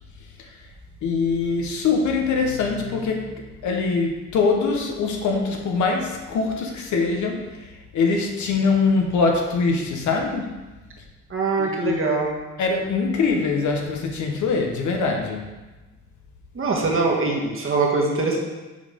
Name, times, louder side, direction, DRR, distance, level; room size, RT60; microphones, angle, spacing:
voice 1, 1.0-10.5 11.6-12.0 12.6-15.5, left 4 dB, 75° left, 2 dB, 1.3 m, -23 dB
voice 2, 11.3-12.3 16.5-18.4, right 3 dB, 45° right, -1 dB, 1.7 m, -22 dB
7.0 x 4.1 x 5.3 m, 1.2 s
cardioid pair, 90°, 30 cm